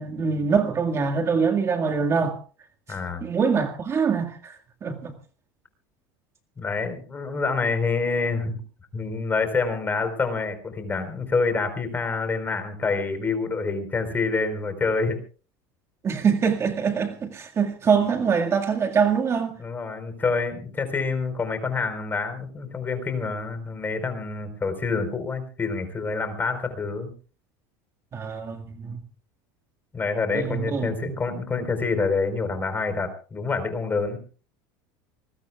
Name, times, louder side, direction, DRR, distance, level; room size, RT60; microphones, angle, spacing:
voice 1, 0.0-2.4 3.2-5.1 16.0-19.5 28.1-29.0 30.3-31.1, right 6 dB, 25° right, 2.0 m, -24 dB
voice 2, 2.9-3.2 6.6-8.6 8.9-15.2 19.6-27.1 29.9-34.2, left 4 dB, 20° left, 4.3 m, -27 dB
25.0 x 21.0 x 2.4 m
supercardioid pair, 135°, 10 cm